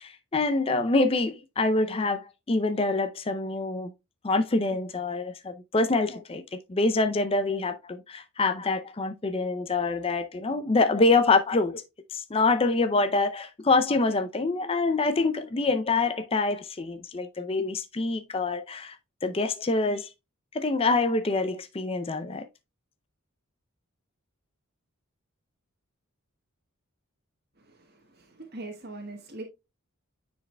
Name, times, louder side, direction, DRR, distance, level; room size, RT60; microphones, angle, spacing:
voice 1, 0.0-3.9 4.2-11.8 12.1-19.0 19.2-20.1 20.5-22.5, left 3 dB, 25° left, 0.5 m, -26 dB
voice 2, 27.6-29.4, right 2 dB, 45° right, 1.3 m, -42 dB
9.2 x 4.8 x 2.2 m
head